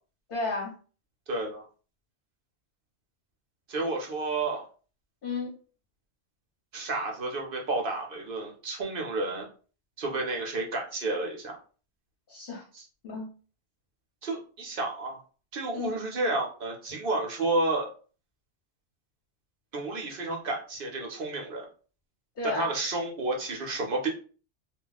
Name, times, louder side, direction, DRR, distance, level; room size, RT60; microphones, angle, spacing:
voice 1, 0.3-0.7 5.2-5.5 12.3-12.6 13.0-13.3 15.7-16.0 22.4-22.7, left 3 dB, 50° left, -3 dB, 1.0 m, -33 dB
voice 2, 1.3-1.6 3.7-4.6 6.7-9.5 10.0-11.6 14.2-15.2 15.5-17.9 19.7-21.7 22.4-24.1, right 2 dB, 55° right, 1 dB, 0.8 m, -31 dB
2.3 x 2.1 x 3.9 m, 0.38 s
omnidirectional pair, 1.2 m